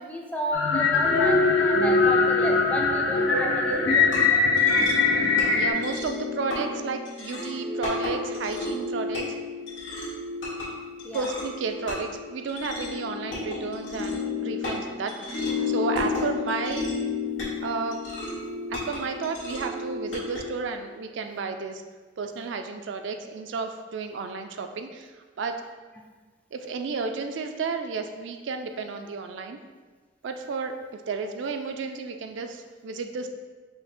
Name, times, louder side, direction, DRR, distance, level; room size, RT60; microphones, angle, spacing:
voice 1, 0.0-4.2 11.0-11.3, left 1 dB, 5° left, 0 dB, 0.4 m, -33 dB
sound 1, 0.5-5.7, left 3 dB, 70° left, 0.7 m, -21 dB
sound 2, 3.7-20.4, left 4 dB, 85° left, 1.2 m, -32 dB
voice 2, 5.2-9.3 11.1-16.9 17.6-18.0 18.7-21.8 22.2-25.1 25.4-25.6 26.5-29.6 30.2-33.3, right 4 dB, 75° right, 6 dB, 0.4 m, -32 dB
5.6 x 2.1 x 4.3 m, 1.4 s
head